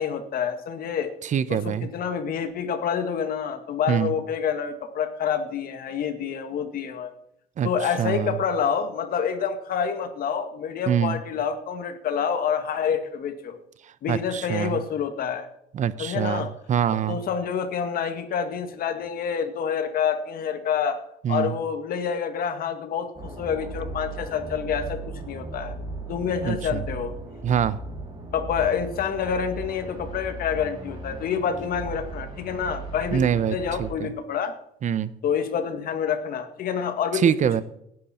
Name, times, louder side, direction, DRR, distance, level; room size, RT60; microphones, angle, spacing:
voice 1, 0.0-1.1 1.5-7.1 7.6-13.6 14.0-15.5 16.0-16.5 17.1-21.0 21.3-25.0 25.3-25.7 26.1-27.1 28.3-34.5 35.2-37.3, left 7 dB, 60° left, 8 dB, 1.9 m, -27 dB
voice 2, 1.2-1.9 3.9-4.1 7.6-7.7 8.0-8.4 10.9-11.2 14.1-14.8 15.7-17.2 21.2-21.5 26.4-26.8 27.4-27.8 33.1-34.1 34.8-35.1 37.1-37.6, right 9 dB, 45° right, 16 dB, 0.9 m, -24 dB
sound 1, 23.1-33.9, right 2 dB, 25° right, 6.3 m, -37 dB
18.0 x 11.0 x 4.5 m, 0.75 s
cardioid pair, 110°, 17 cm